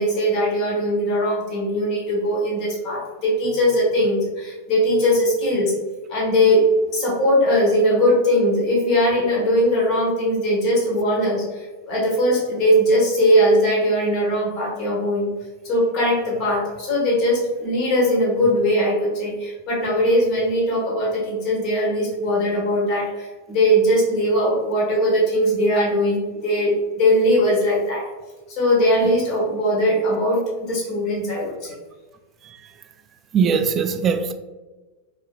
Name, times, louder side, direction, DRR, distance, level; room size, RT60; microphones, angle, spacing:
voice 1, 0.0-5.7 6.1-6.7 6.9-15.3 15.6-28.1 28.5-31.7, equal, 40° left, 1.5 m, -20 dB
voice 2, 33.3-34.3, right 6 dB, 25° right, 0.3 m, -20 dB
4.0 x 2.9 x 2.3 m
figure-of-eight pair, 90°, 0 cm